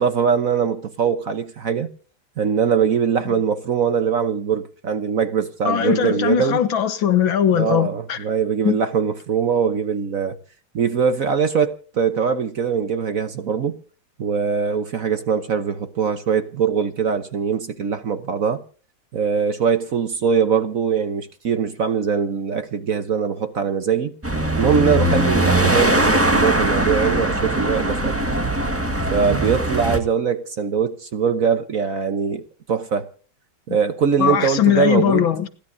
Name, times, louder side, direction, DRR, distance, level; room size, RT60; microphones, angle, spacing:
voice 1, 0.0-1.9 2.4-6.6 7.5-10.4 10.7-13.8 14.2-18.6 19.1-24.1 24.6-28.2 29.1-33.1 33.7-35.3, right 6 dB, 50° right, 1.1 m, -22 dB
voice 2, 5.7-8.2 8.6-8.8 34.2-35.5, left 9 dB, 65° left, 2.0 m, -19 dB
sound 1, 24.2-30.0, right 1 dB, 10° right, 1.2 m, -20 dB
29.5 x 12.0 x 2.7 m
omnidirectional pair, 2.4 m